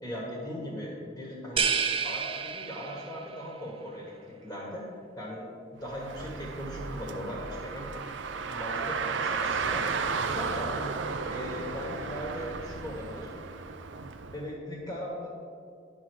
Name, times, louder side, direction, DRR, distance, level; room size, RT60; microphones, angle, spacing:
voice 1, 0.0-1.7 2.0-4.1 4.4-4.8 5.2-5.5 5.8-7.9 8.2-9.8 10.2-10.9 11.3-13.3 14.3-15.3, equal, 15° left, -3 dB, 1.4 m, -38 dB
sound 1, 1.6-3.3, right 6 dB, 30° right, 0.4 m, -29 dB
Car, 5.8-14.4, right 5 dB, 80° right, 0.5 m, -34 dB
10.5 x 3.9 x 6.2 m, 2.3 s
head